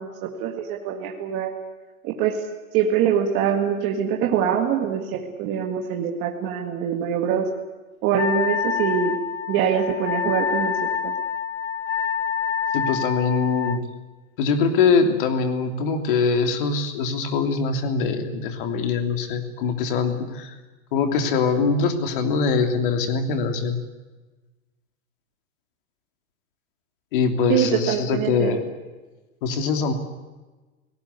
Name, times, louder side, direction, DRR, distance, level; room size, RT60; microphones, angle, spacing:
voice 1, 0.0-1.5 2.0-2.4 2.7-7.5 8.0-9.2 9.5-10.7 11.0-11.1 27.5-28.6, right 8 dB, 25° right, 2 dB, 1.8 m, -24 dB
Wind instrument woodwind instrument, 8.2-13.8, left 7 dB, 55° left, 1.9 m, -27 dB
voice 2, 12.7-13.8 14.4-20.5 20.9-23.8 27.1-28.6 29.4-29.9, left 5 dB, 35° left, 6 dB, 3.1 m, -23 dB
28.0 x 19.0 x 8.3 m, 1.2 s
hypercardioid pair, 170°, 41 cm